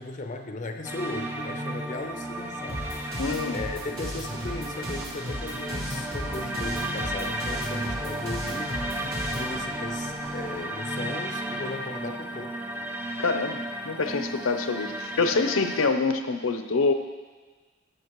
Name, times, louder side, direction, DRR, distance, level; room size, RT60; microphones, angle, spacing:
voice 1, 0.0-2.9 3.5-8.8 9.3-12.6, left 2 dB, 35° left, 6 dB, 0.5 m, -37 dB
sound 1, 0.8-15.9, right 1 dB, 10° right, 0.5 m, -33 dB
sound 2, 2.7-9.5, equal, 75° right, 3.5 m, -36 dB
voice 2, 3.2-3.6 13.2-16.9, left 4 dB, 80° left, 7 dB, 0.6 m, -26 dB
sound 3, 4.3-10.6, right 1 dB, 60° right, 2.2 m, -48 dB
14.5 x 7.9 x 3.1 m, 1.3 s
head